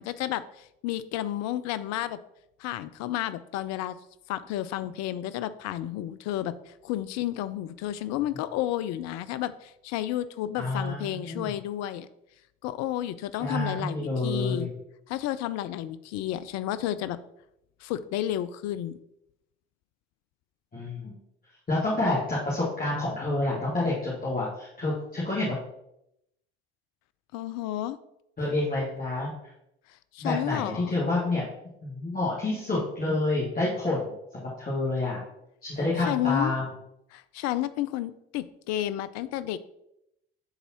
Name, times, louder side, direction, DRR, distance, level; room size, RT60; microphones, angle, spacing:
voice 1, 0.0-2.2 2.6-4.0 4.3-12.1 12.6-14.7 15.1-17.2 17.8-19.0 27.3-28.0 30.1-31.0 36.1-36.5 37.1-39.6, left 13 dB, 55° left, 14 dB, 0.4 m, -31 dB
voice 2, 10.6-11.5 13.4-14.7 20.7-21.1 21.7-25.5 28.4-29.3 30.2-31.4 31.8-35.2 35.6-36.7, left 2 dB, 25° left, -7 dB, 1.8 m, -28 dB
9.7 x 4.0 x 2.9 m, 0.82 s
hypercardioid pair, 55°, 31 cm